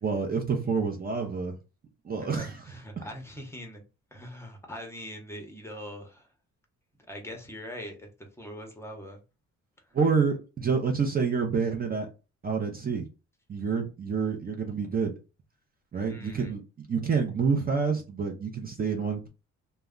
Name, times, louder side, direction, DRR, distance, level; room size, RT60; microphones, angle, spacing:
voice 1, 0.0-1.6 2.0-2.6 3.0-3.1 9.9-12.1 12.4-13.1 13.5-15.1 15.9-19.3, right 5 dB, 30° right, 0.6 m, -28 dB
voice 2, 2.2-3.8 4.1-6.3 7.1-9.2 16.1-16.5, equal, 10° left, 0.8 m, -42 dB
2.2 x 2.1 x 3.6 m
cardioid pair, 90°, 30 cm